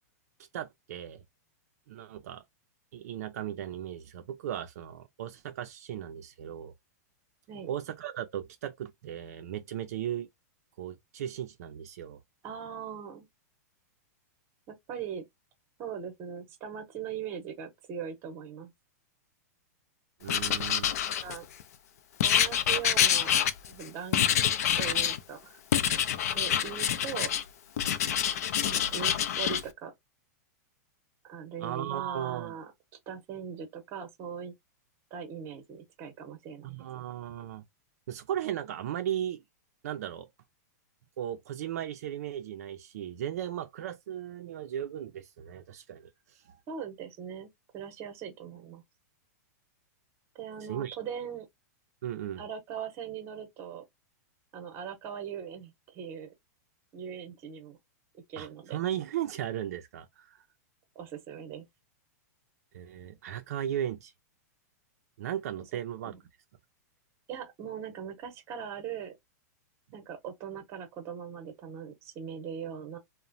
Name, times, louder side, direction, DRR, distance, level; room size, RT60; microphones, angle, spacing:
voice 1, 0.5-1.2 1.9-2.4 2.9-6.7 7.7-10.3 10.8-12.2 20.2-21.0 31.6-32.6 36.6-37.6 38.1-39.4 39.8-40.3 41.2-46.6 50.7-51.0 52.0-52.4 58.4-60.4 62.7-64.1 65.2-66.1, right 11 dB, 65° right, 0.5 m, -36 dB
voice 2, 12.4-13.3 14.7-15.2 15.8-18.7 21.2-21.4 22.2-23.3 23.6-25.6 26.3-27.4 28.6-29.9 31.2-32.7 33.1-34.5 35.1-36.8 46.7-47.5 47.7-48.8 50.3-51.5 52.4-53.8 54.5-56.3 56.9-57.8 58.1-58.8 60.9-61.6 66.1-66.2 67.3-69.2 69.9-73.0, right 8 dB, 25° right, 0.8 m, -40 dB
Writing, 20.3-21.6 22.2-23.8 24.1-25.2 25.7-27.4 27.8-29.6, left 9 dB, 65° left, 0.5 m, -26 dB
3.0 x 2.1 x 2.5 m
supercardioid pair, 165°, 9 cm